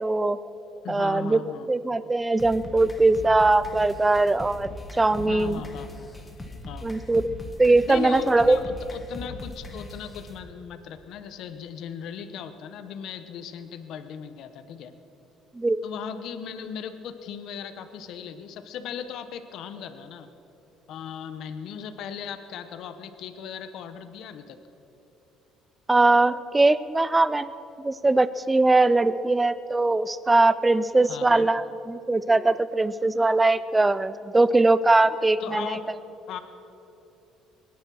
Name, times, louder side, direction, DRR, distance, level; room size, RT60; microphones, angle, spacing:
voice 1, 0.0-0.4 0.9-1.4 1.7-5.6 6.8-8.6 15.6-15.8 25.9-27.5 27.8-35.8, right 2 dB, 10° right, 16 dB, 0.4 m, -21 dB
voice 2, 0.8-1.7 5.1-6.1 6.7-6.9 7.9-14.9 15.8-20.3 20.9-24.6 31.1-31.5 35.4-35.9 36.3-36.4, left 8 dB, 55° left, 10 dB, 0.8 m, -37 dB
sound 1, 2.4-10.4, left 2 dB, 10° left, 1.2 m, -40 dB
22.5 x 10.5 x 6.2 m, 3.0 s
cardioid pair, 175°, 0 cm